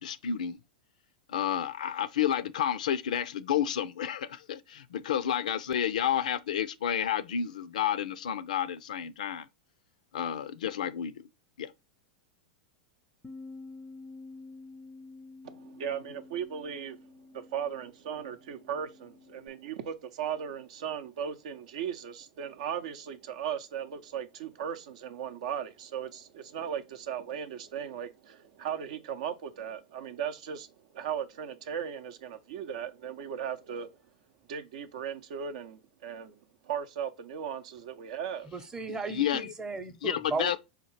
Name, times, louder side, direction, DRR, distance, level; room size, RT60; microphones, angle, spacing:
voice 1, 0.0-0.6 1.3-9.5 10.1-11.3 11.6-11.7 38.9-39.5 40.0-40.6, left 9 dB, 75° left, 0.4 m, -30 dB
Bass guitar, 13.2-19.5, left 3 dB, 15° left, 0.5 m, -49 dB
voice 2, 15.4-17.0 17.3-34.0 34.5-38.5, right 8 dB, 65° right, 0.6 m, -37 dB
voice 3, 38.5-40.6, right 4 dB, 15° right, 0.7 m, -36 dB
5.0 x 2.4 x 3.1 m
hypercardioid pair, 105°, 4 cm